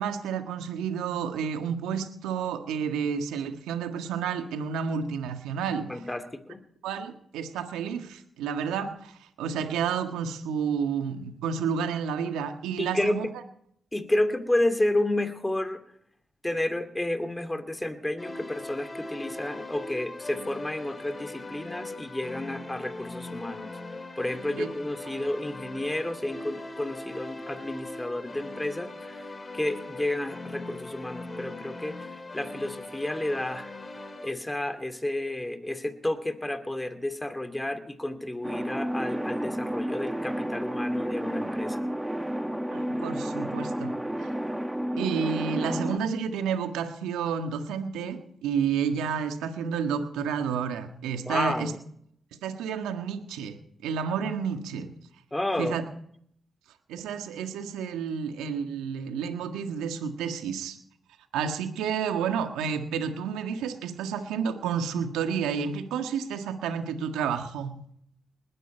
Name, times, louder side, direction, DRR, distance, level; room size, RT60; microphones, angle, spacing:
voice 1, 0.0-5.9 6.8-13.3 24.5-24.7 25.1-25.2 42.7-44.3 45.0-51.7 52.4-53.6 53.8-54.9 55.6-55.8 56.9-60.8 61.3-67.7, right 7 dB, 85° right, 6 dB, 1.6 m, -30 dB
voice 2, 5.9-6.6 12.8-13.2 13.9-15.8 16.4-23.7 24.2-29.2 29.5-33.7 34.2-41.9 51.3-51.8 55.3-55.8, left 1 dB, 15° left, 8 dB, 2.5 m, -31 dB
sound 1, 18.2-34.3, left 2 dB, 35° left, 3.4 m, -40 dB
sound 2, 38.4-46.0, equal, 10° right, 1.1 m, -31 dB
20.0 x 13.0 x 4.5 m, 0.67 s
supercardioid pair, 50°, 0 cm